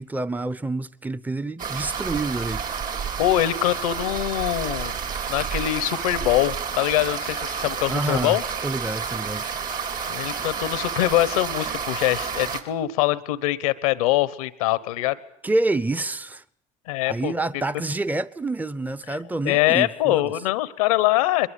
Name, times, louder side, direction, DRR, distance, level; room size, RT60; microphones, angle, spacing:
voice 1, 0.0-2.7 7.9-9.6 10.4-10.5 15.4-16.4 17.1-20.3, right 2 dB, 10° right, 0.9 m, -28 dB
sound 1, 1.6-12.6, right 6 dB, 55° right, 4.2 m, -30 dB
voice 2, 3.2-5.0 5.3-8.4 10.1-15.2 16.9-17.3 19.1-19.2 19.4-21.5, left 15 dB, 90° left, 1.1 m, -23 dB
22.0 x 22.0 x 8.3 m
supercardioid pair, 75°, 18 cm